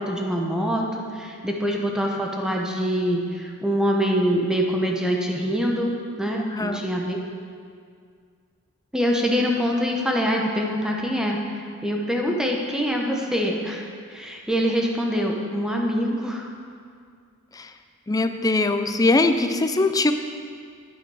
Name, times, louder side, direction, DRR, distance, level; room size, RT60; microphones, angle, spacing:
voice 1, 0.0-5.9 6.2-7.2 8.9-16.5, equal, 5° right, 0 dB, 0.8 m, -24 dB
voice 2, 18.1-20.1, left 2 dB, 15° left, 8 dB, 0.4 m, -21 dB
9.4 x 8.5 x 4.8 m, 2.2 s
head